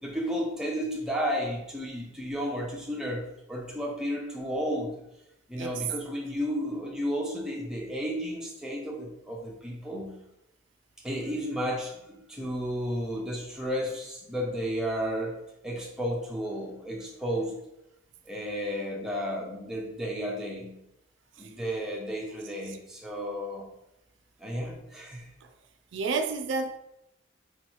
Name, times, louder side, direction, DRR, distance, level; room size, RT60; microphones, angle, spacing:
voice 1, 0.0-4.9 5.5-10.1 11.0-17.5 18.3-20.7 21.4-23.7 24.4-25.3, equal, 5° right, 0.7 m, -33 dB
voice 2, 25.9-26.8, right 4 dB, 70° right, 0.3 m, -31 dB
3.2 x 2.9 x 4.4 m
head